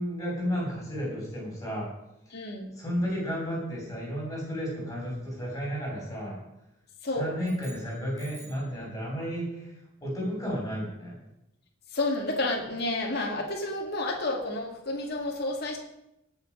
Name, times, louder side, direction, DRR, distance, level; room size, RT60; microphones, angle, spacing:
voice 1, 0.0-1.9 2.3-2.4 2.7-6.4 7.1-9.7 10.0-11.2, equal, 15° left, -4 dB, 6.6 m, -32 dB
voice 2, 2.3-2.7 7.0-7.3 11.9-15.8, left 2 dB, 50° left, 0 dB, 2.2 m, -30 dB
sound 1, 7.4-8.8, right 3 dB, 15° right, 3.5 m, -52 dB
19.0 x 7.4 x 5.5 m, 0.83 s
head